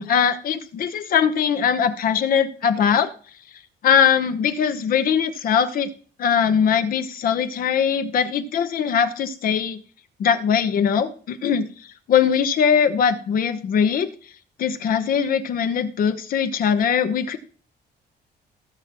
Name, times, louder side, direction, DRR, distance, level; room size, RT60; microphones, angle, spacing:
voice 1, 0.0-3.1 3.8-5.9 6.2-9.8 10.2-11.7 12.1-14.1 14.6-17.4, left 7 dB, 55° left, 10 dB, 0.9 m, -21 dB
17.5 x 6.1 x 3.0 m, 0.43 s
cardioid pair, 165°, 18 cm